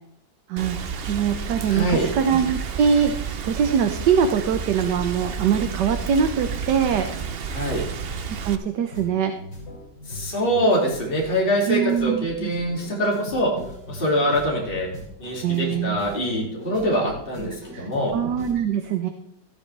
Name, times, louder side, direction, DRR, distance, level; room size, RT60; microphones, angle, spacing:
Rain, 0.6-8.6, right 6 dB, 50° right, 0.7 m, -31 dB
voice 1, 1.1-3.2 3.4-7.1 8.4-9.3 11.7-12.5 15.4-16.0 17.7-19.1, right 7 dB, 75° right, 7 dB, 1.4 m, -23 dB
voice 2, 1.7-2.1 7.5-7.8 10.1-13.5 13.9-14.9 15.2-18.1, equal, 30° left, -2 dB, 2.8 m, -24 dB
sound 1, 8.9-18.5, left 1 dB, 70° left, 6.4 m, -40 dB
14.0 x 12.0 x 3.4 m, 0.80 s
omnidirectional pair, 1.9 m